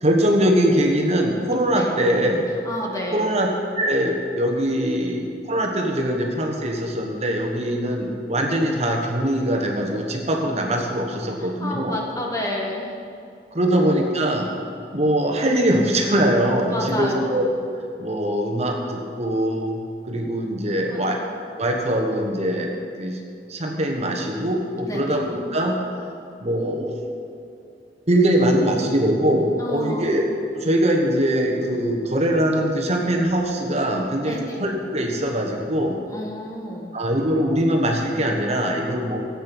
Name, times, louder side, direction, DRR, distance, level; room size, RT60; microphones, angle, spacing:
voice 1, 0.0-2.5 3.1-12.0 13.5-14.5 14.9-17.5 18.0-21.2 21.6-23.2 23.5-25.8 26.4-26.9 28.1-30.3 30.5-36.0 36.9-39.2, right 1 dB, 40° right, 1 dB, 1.4 m, -22 dB
voice 2, 2.6-3.4 11.4-12.9 13.6-13.9 16.6-17.4 20.9-21.2 24.8-25.2 29.6-30.3 34.3-34.6 36.1-36.9, left 1 dB, 20° left, -1 dB, 1.7 m, -30 dB
14.5 x 8.8 x 6.1 m, 2.5 s
head